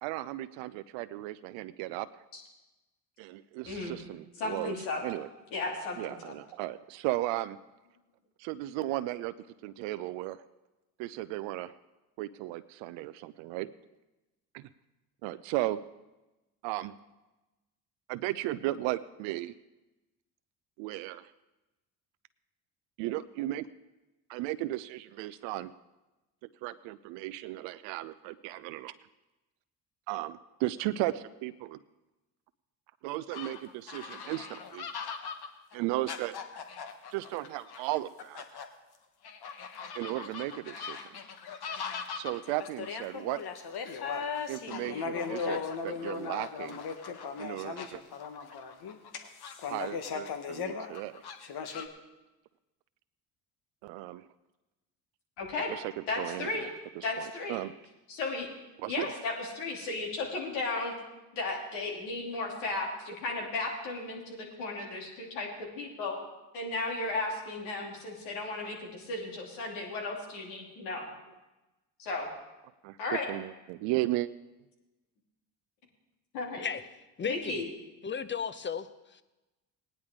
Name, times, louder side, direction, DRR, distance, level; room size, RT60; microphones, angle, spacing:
voice 1, 0.0-2.1 3.2-4.7 5.0-5.3 6.0-7.6 8.4-9.3 9.6-10.4 11.0-11.8 12.2-13.7 14.5-14.6 15.2-15.8 16.6-16.9 18.1-19.5 20.8-21.3 23.0-23.7 24.3-25.7 26.6-28.9 30.1-31.8 33.0-34.9 35.7-36.3 37.1-38.4 39.9-41.2 42.1-43.4 44.5-46.8 47.4-48.0 49.7-51.2 53.8-54.2 55.7-56.7 57.0-57.7 58.8-59.1 72.8-73.0 73.3-74.3, right 16 dB, 70° right, 13 dB, 0.6 m, -35 dB
voice 2, 3.6-4.0 4.4-5.0 5.5-6.3 55.4-55.7 56.1-56.7 57.0-57.6 58.1-58.5 58.9-60.9 61.3-65.5 65.7-66.2 66.5-71.1 72.0-72.3 73.0-73.3 76.3-76.7 77.2-77.6, left 3 dB, 80° left, -1 dB, 2.9 m, -35 dB
sound 1, 33.3-38.6 39.2-51.9, left 6 dB, 55° left, 1.4 m, -38 dB
voice 3, 77.2-77.6 78.0-79.2, left 6 dB, 25° left, 14 dB, 0.8 m, -35 dB
17.5 x 10.0 x 3.7 m, 1.1 s
hypercardioid pair, 60°, 46 cm